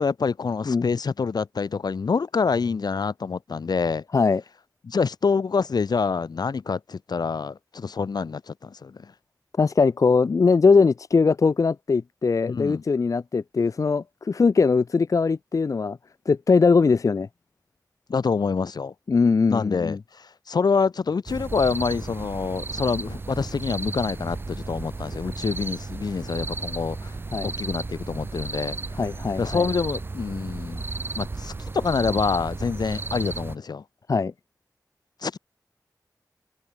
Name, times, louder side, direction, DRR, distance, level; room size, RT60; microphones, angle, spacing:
voice 1, 0.0-4.0 4.8-9.1 12.5-12.8 18.1-18.9 19.5-27.1 27.4-28.8 29.4-30.8 31.2-33.8 35.2-35.4, left 5 dB, 75° left, 0.8 m, -26 dB
voice 2, 9.6-16.0 16.3-17.3 19.1-20.0 27.3-27.5 28.9-29.7 34.1-34.3, left 4 dB, 55° left, 0.4 m, -21 dB
sound 1, 21.3-33.6, right 3 dB, 35° right, 0.3 m, -34 dB
wide cardioid pair, 70°, 7 cm